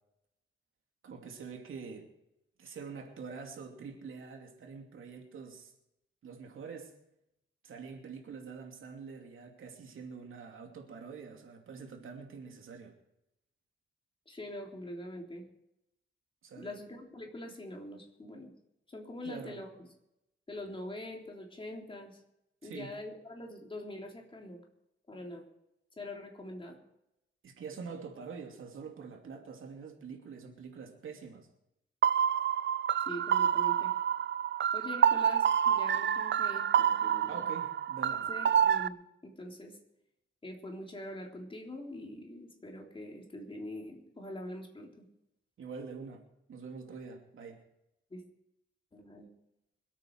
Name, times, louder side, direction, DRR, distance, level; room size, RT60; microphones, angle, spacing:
voice 1, 1.0-2.1 2.6-5.7 6.2-6.9 7.6-12.9 16.4-16.8 19.2-19.6 22.6-22.9 27.4-31.5 37.3-38.3 45.6-47.6, right 5 dB, 90° right, 3 dB, 2.7 m, -45 dB
voice 2, 14.3-15.4 16.6-18.5 18.9-19.7 20.5-22.2 22.6-24.6 25.1-25.4 26.0-26.8 33.1-33.9 34.7-37.4 38.3-39.0 39.2-39.8 40.4-45.0 48.1-48.2 48.9-49.3, left 1 dB, 25° left, 0 dB, 3.5 m, -44 dB
sound 1, 32.0-38.9, right 9 dB, 65° right, 0.5 m, -28 dB
26.0 x 9.0 x 4.7 m, 0.85 s
wide cardioid pair, 120°, 20 cm